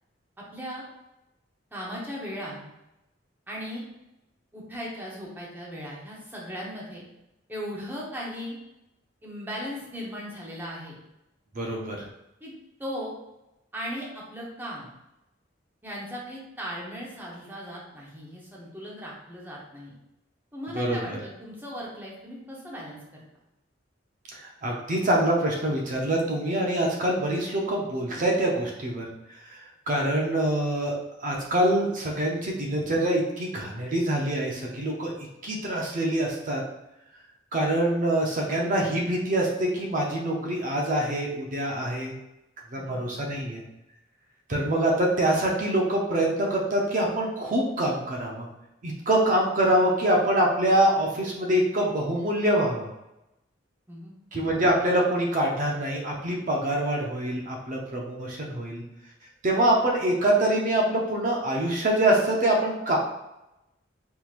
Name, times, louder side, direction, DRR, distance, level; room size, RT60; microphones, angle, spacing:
voice 1, 0.4-0.8 1.7-2.6 3.5-3.9 4.5-7.0 7.5-8.6 9.2-11.0 12.4-12.5 12.8-13.2 13.7-14.9 15.8-20.0 20.5-23.2 42.7-43.1 53.9-54.1, equal, 10° right, -5 dB, 0.8 m, -37 dB
voice 2, 11.5-12.0 20.7-21.2 24.3-29.1 29.4-29.6 29.9-30.9 31.2-35.1 35.4-36.6 37.5-42.1 42.7-43.6 44.5-48.5 48.8-52.9 54.3-58.8 59.4-63.0, right 1 dB, 45° right, -1 dB, 0.5 m, -25 dB
3.7 x 2.9 x 2.4 m, 0.90 s
head